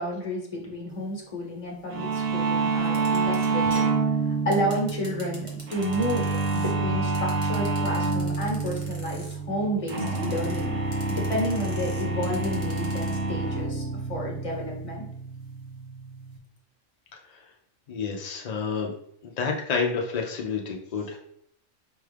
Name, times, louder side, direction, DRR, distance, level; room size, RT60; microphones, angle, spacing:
voice 1, 0.0-3.9 4.4-10.8 11.1-13.8 14.1-15.0, equal, 30° left, -1 dB, 1.0 m, -31 dB
sound 1, 1.9-16.4, right 4 dB, 70° right, 1.0 m, -28 dB
sound 2, 2.8-6.7 7.1-9.4 9.9-10.7 10.9-13.1, equal, 30° right, 0.8 m, -44 dB
voice 2, 17.9-18.9 19.2-21.2, left 5 dB, 70° left, 1 dB, 0.3 m, -29 dB
5.3 x 2.3 x 3.3 m, 0.69 s
omnidirectional pair, 1.3 m